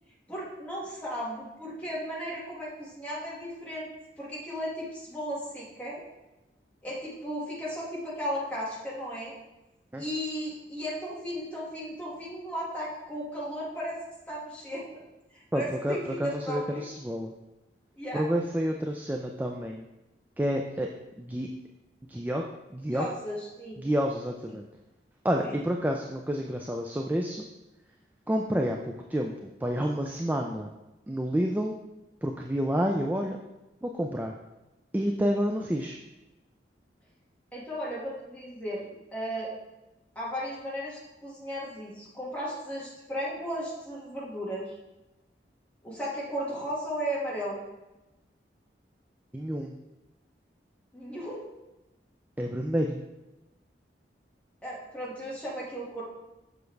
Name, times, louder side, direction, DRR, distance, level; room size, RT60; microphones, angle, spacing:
voice 1, 0.3-3.9 4.2-6.0 6.8-9.3 10.0-14.0 14.3-15.0 15.3-16.8 17.9-18.2 22.9-23.8 25.4-25.5 37.5-39.5 40.1-44.8 45.8-47.6 50.9-51.5 54.6-56.0, equal, 10° left, -6 dB, 1.8 m, -35 dB
voice 2, 15.5-17.3 18.1-19.9 20.4-20.9 21.2-21.5 22.1-22.4 22.7-23.1 23.8-24.6 25.2-27.5 28.3-29.3 29.6-30.7 31.1-31.7 32.2-33.4 33.8-34.3 34.9-36.0 49.3-49.8 52.4-53.0, equal, 10° right, 2 dB, 0.3 m, -29 dB
7.0 x 6.3 x 3.3 m, 1.0 s
head